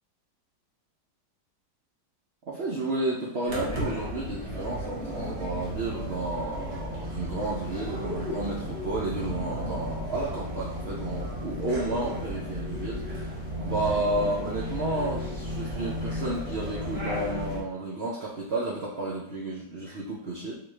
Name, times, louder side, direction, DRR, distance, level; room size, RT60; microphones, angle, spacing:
voice 1, 2.5-20.6, right 2 dB, 85° right, -5 dB, 0.5 m, -32 dB
sound 1, 3.5-17.6, equal, 45° right, 1.1 m, -34 dB
4.1 x 2.4 x 3.2 m, 0.75 s
omnidirectional pair, 1.8 m